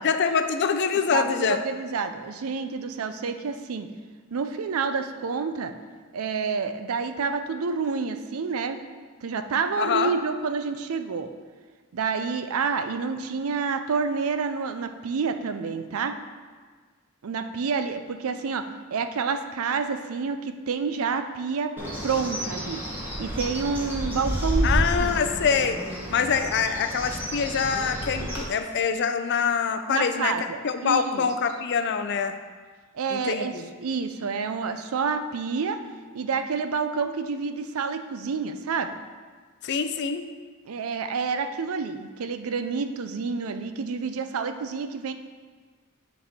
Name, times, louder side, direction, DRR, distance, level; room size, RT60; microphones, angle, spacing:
voice 1, 0.0-1.6 9.8-10.1 24.6-25.8 26.1-30.4 30.6-32.3 33.1-33.7 39.6-40.2, left 6 dB, 55° left, 8 dB, 0.4 m, -25 dB
voice 2, 1.1-3.9 4.3-5.7 6.1-8.8 9.2-11.3 11.9-16.1 17.2-21.7 22.0-22.8 23.2-25.1 29.9-31.3 32.9-33.5 33.8-35.8 36.1-38.9 40.7-45.1, right 5 dB, 75° right, 8 dB, 0.5 m, -28 dB
Bird, 21.8-28.4, equal, 10° right, 1.1 m, -30 dB
9.5 x 4.1 x 3.6 m, 1.5 s
head